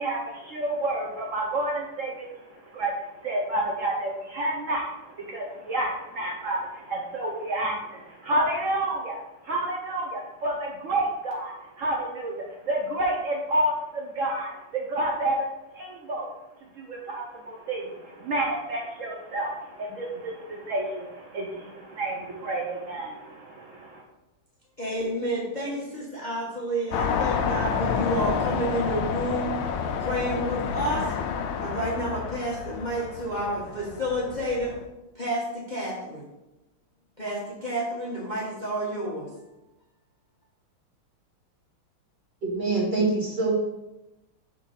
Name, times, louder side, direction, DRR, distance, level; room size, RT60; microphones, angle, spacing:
voice 1, 0.0-2.1 2.7-2.9 3.2-4.9 5.3-14.5 14.9-15.4 15.8-16.3 16.9-19.5 19.8-24.0, right 1 dB, 80° right, -1 dB, 0.7 m, -29 dB
voice 2, 24.8-29.5 30.0-31.1 31.6-34.8 35.1-36.3 37.2-39.3, right 1 dB, 30° left, -5 dB, 1.0 m, -30 dB
sound 1, 26.9-34.8, left 6 dB, 75° left, 1.4 m, -29 dB
voice 3, 42.4-43.5, right 3 dB, 25° right, -6 dB, 1.7 m, -25 dB
6.1 x 3.7 x 5.6 m, 0.98 s
omnidirectional pair, 2.4 m